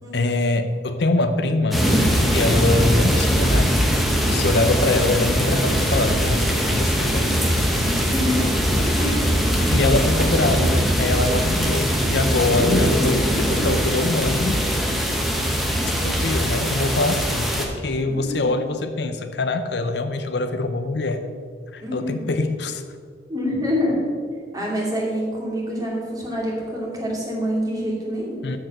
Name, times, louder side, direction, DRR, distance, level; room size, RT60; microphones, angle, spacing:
voice 1, 0.1-1.9 2.3-3.8 4.3-7.3 7.7-7.9 9.7-14.6 15.8-21.3 21.7-22.8 28.4-28.6, left 2 dB, 65° left, 9 dB, 0.7 m, -24 dB
sound 1, 1.7-17.7, equal, ahead, 1.2 m, -21 dB
voice 2, 7.8-8.6 8.9-9.3 18.0-18.5 21.8-22.3 23.3-24.0 24.5-28.4, equal, 20° right, -4 dB, 2.7 m, -26 dB
13.5 x 4.9 x 6.6 m, 2.1 s
head